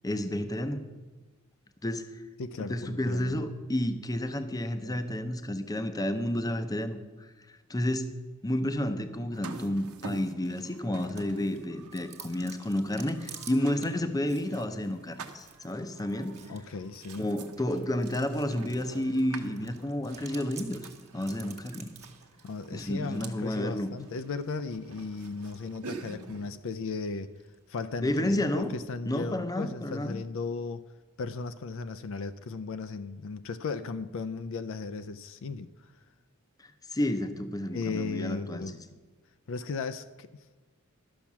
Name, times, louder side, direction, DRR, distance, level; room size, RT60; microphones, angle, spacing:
voice 1, 0.0-0.8 1.8-2.1 2.6-7.0 7.7-8.1 8.4-16.4 17.2-20.8 21.1-21.9 22.7-24.0 28.0-28.7 29.1-30.2 36.9-38.6, left 1 dB, 15° left, 9 dB, 0.6 m, -31 dB
voice 2, 2.4-3.5 4.8-5.0 16.5-17.3 22.4-27.3 27.7-30.8 31.2-35.7 37.7-38.8 39.5-40.3, left 4 dB, 60° left, 12 dB, 0.5 m, -36 dB
sound 1, 9.3-26.6, right 4 dB, 80° right, 1.0 m, -46 dB
Chewing mastication, 11.2-28.8, right 7 dB, 30° right, 1.4 m, -53 dB
12.0 x 5.8 x 7.2 m, 1.2 s
head